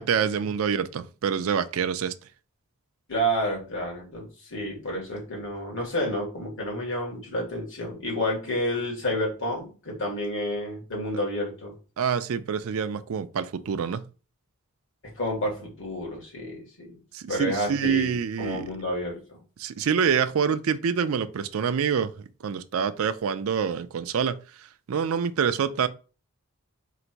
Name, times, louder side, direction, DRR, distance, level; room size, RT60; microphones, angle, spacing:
voice 1, 0.0-2.1 12.0-14.0 17.1-18.7 19.6-24.4 24.9-25.9, right 7 dB, 65° right, 0.4 m, -26 dB
voice 2, 3.1-11.7 15.2-17.0 17.3-19.4, equal, 60° left, 2.1 m, -30 dB
3.9 x 2.6 x 4.5 m
head